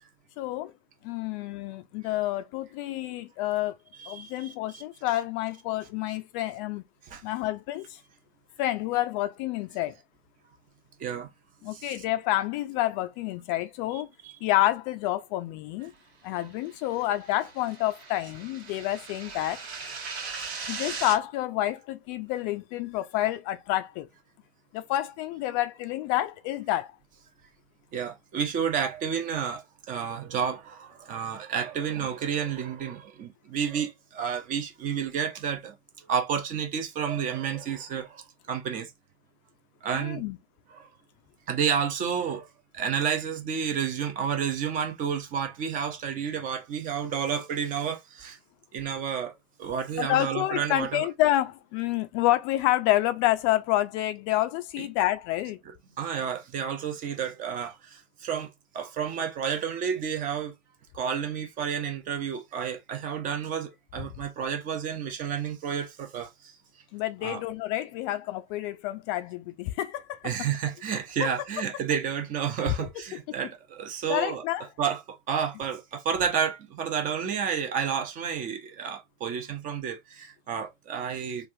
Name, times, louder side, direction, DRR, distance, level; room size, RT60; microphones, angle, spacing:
voice 1, 0.4-0.7 1.0-3.7 4.1-6.8 7.2-8.0 8.6-9.9 11.6-14.1 14.4-15.9 16.2-19.6 20.7-24.1 24.7-26.9 39.9-40.4 50.0-55.6 66.9-70.5 71.2-71.3 74.1-74.7, left 15 dB, 30° left, 0.4 m, -28 dB
voice 2, 4.0-4.8 7.1-7.2 11.0-11.3 11.7-11.9 13.9-14.4 16.4-16.5 20.4-20.6 27.9-38.9 39.8-40.2 40.7-40.9 41.5-42.5 42.7-48.4 48.7-49.3 49.6-51.1 54.8-54.9 56.0-60.5 60.9-66.6 67.2-67.4 70.2-74.4 74.8-81.5, right 7 dB, 25° right, 0.7 m, -31 dB
sound 1, 16.7-21.2, right 5 dB, 65° right, 1.3 m, -39 dB
3.3 x 2.4 x 2.7 m
figure-of-eight pair, 105°, 33 cm